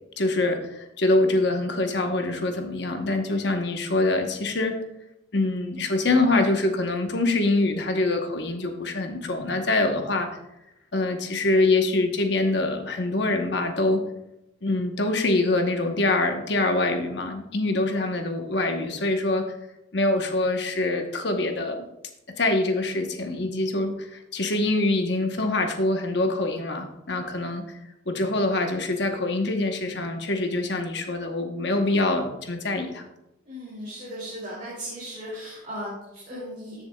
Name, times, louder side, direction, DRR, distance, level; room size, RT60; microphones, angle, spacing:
voice 1, 0.2-4.8 5.3-10.3 10.9-14.0 14.6-19.5 19.9-21.8 22.4-27.8 28.1-33.0, left 2 dB, 55° left, 5 dB, 1.0 m, -24 dB
voice 2, 33.5-36.8, equal, 40° right, -6 dB, 2.4 m, -37 dB
13.5 x 6.9 x 2.3 m, 0.90 s
head